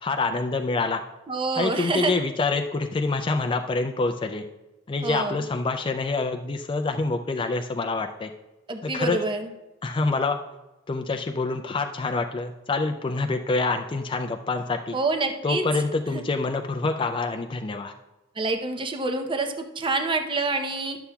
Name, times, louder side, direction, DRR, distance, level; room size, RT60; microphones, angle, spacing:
voice 1, 0.0-1.0 1.6-4.4 4.9-8.3 8.8-9.2 9.8-10.4 10.9-15.0 15.4-17.9, left 3 dB, 25° left, 5 dB, 0.3 m, -26 dB
voice 2, 1.3-2.2 5.0-5.4 8.7-9.5 14.9-15.6 16.1-16.3 18.4-21.0, right 3 dB, 25° right, 5 dB, 0.6 m, -27 dB
11.5 x 6.9 x 2.3 m, 1.0 s
head